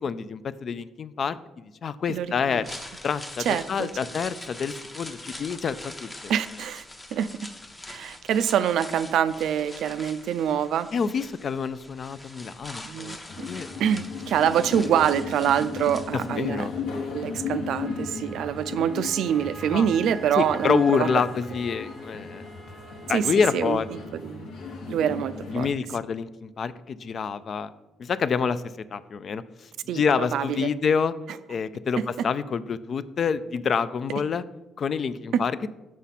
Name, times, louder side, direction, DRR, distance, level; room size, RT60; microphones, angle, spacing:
voice 1, 0.0-2.7 3.0-6.4 10.9-13.1 13.5-13.7 16.1-16.7 19.7-19.9 20.4-22.5 23.1-23.9 25.5-27.7 28.0-28.6 28.9-31.1 31.5-34.4 34.8-35.7, left 6 dB, 45° left, 14 dB, 0.3 m, -27 dB
sound 1, 2.5-16.6 16.9-17.0, left 1 dB, 15° left, 0.7 m, -43 dB
voice 2, 3.5-3.9 6.3-6.8 7.1-7.3 7.9-10.9 12.8-13.5 13.8-16.7 17.1-21.1 23.1-23.2 23.5-23.8 24.1-24.5 24.9-25.7 29.9-30.0 30.3-30.7 35.3-35.4, right 9 dB, 75° right, 13 dB, 0.3 m, -25 dB
sound 2, 13.3-25.7, left 5 dB, 80° left, 1.0 m, -36 dB
Wind instrument woodwind instrument, 17.8-24.1, right 1 dB, 20° right, 0.7 m, -44 dB
6.2 x 5.6 x 4.1 m, 1.0 s
cardioid pair, 115°, 0 cm